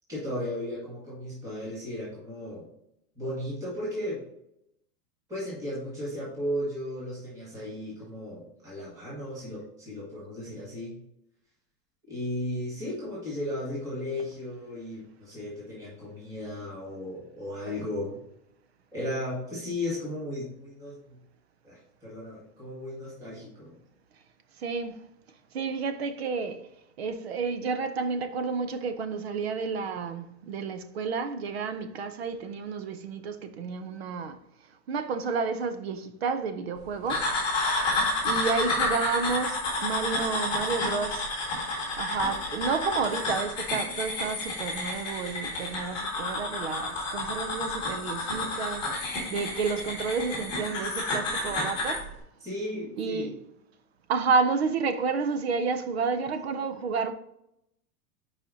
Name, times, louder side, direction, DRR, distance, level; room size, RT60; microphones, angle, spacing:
voice 1, 0.1-2.7 3.1-4.2 5.3-11.0 12.1-18.2 18.9-21.2 21.6-23.7 52.4-53.3, left 1 dB, 5° right, 1.5 m, -35 dB
voice 2, 24.6-25.0 25.5-26.7 27.0-34.4 34.9-37.3 38.2-41.3 42.0-52.1 53.0-53.3 54.1-57.1, right 5 dB, 45° right, 0.5 m, -30 dB
sound 1, 37.1-52.0, left 2 dB, 10° left, 1.8 m, -30 dB
8.2 x 4.9 x 2.7 m
supercardioid pair, 180°, 48 cm